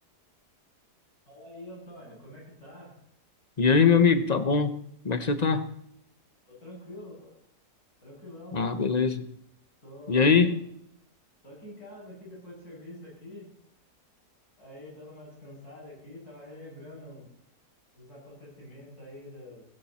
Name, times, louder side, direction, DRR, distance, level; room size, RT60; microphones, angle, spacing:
voice 1, 1.3-2.9 6.5-7.3 8.0-8.6 9.8-10.6 11.4-13.5 14.6-17.3 18.0-19.7, left 1 dB, 65° left, 8.7 m, -46 dB
voice 2, 3.6-4.8 5.0-5.7 8.5-9.3 10.1-10.6, left 5 dB, 30° left, 0.9 m, -22 dB
18.5 x 16.0 x 4.3 m
omnidirectional pair, 1.7 m